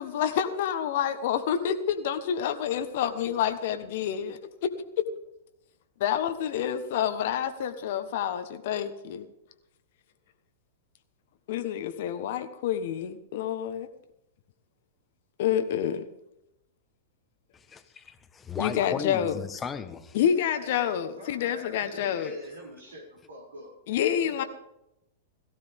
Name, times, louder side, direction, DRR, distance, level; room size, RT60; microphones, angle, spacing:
voice 1, 0.0-4.7 6.0-9.3 11.5-13.9 15.4-16.0 18.6-19.3 20.1-22.3 23.9-24.4, left 9 dB, 60° left, 1.3 m, -28 dB
voice 2, 17.5-20.2 22.1-22.4, left 6 dB, 20° left, 1.4 m, -37 dB
voice 3, 21.2-23.7 24.2-24.5, right 1 dB, 80° right, 6.4 m, -45 dB
17.5 x 15.0 x 3.6 m
hypercardioid pair, 105°, 0 cm